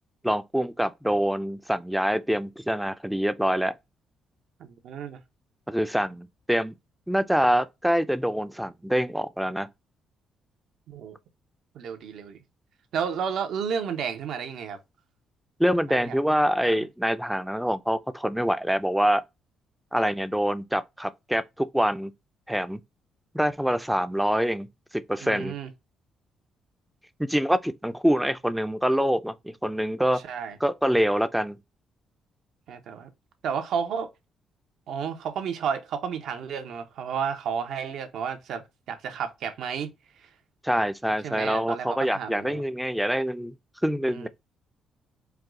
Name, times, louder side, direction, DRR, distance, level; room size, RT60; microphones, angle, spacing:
voice 1, 0.2-3.7 5.7-6.7 7.1-9.7 15.6-19.2 19.9-22.1 22.5-22.8 23.3-24.7 24.9-25.6 27.2-30.2 30.6-31.6 40.6-43.5 43.8-44.3, equal, 5° right, 0.5 m, -25 dB
voice 2, 4.6-5.2 10.9-11.2 11.7-12.4 12.9-14.8 15.9-16.2 16.7-16.8 25.2-25.7 30.2-30.6 32.7-33.1 33.4-34.1 34.9-39.9 40.2-40.3 41.2-42.6 44.1-44.3, right 7 dB, 75° right, 1.0 m, -32 dB
4.7 x 2.3 x 3.7 m
cardioid pair, 90°, 0 cm